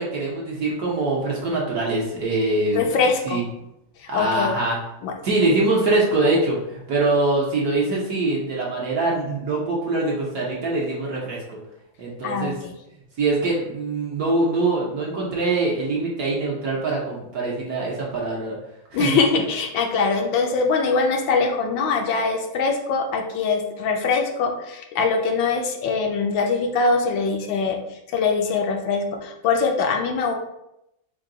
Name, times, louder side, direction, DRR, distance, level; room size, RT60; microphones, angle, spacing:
voice 1, 0.0-2.8 3.2-3.4 4.1-4.8 5.2-11.6 12.0-12.6 13.2-18.6 18.9-19.4, right 2 dB, 60° right, -4 dB, 1.2 m, -23 dB
voice 2, 2.7-3.4 4.1-4.5 5.0-5.1 12.2-12.7 18.9-27.8 28.1-30.3, left 4 dB, 75° left, 3 dB, 1.3 m, -22 dB
4.6 x 2.3 x 3.8 m, 0.85 s
omnidirectional pair, 2.1 m